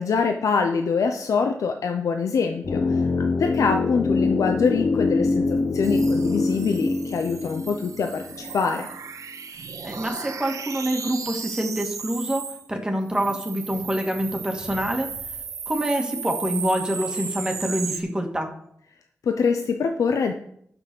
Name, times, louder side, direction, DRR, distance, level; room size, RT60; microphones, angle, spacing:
voice 1, 0.0-8.9 19.2-20.3, left 5 dB, 90° left, 5 dB, 0.7 m, -24 dB
sound 1, 2.6-8.7 8.9-9.0, left 3 dB, 55° left, 0.9 m, -24 dB
sound 2, 5.8-12.7 13.1-18.0, right 6 dB, 80° right, 0.9 m, -35 dB
voice 2, 9.8-12.4 12.7-15.1 15.7-18.5, right 1 dB, 15° right, 2 dB, 2.1 m, -26 dB
9.6 x 6.2 x 7.0 m, 0.70 s
cardioid pair, 65°, 5 cm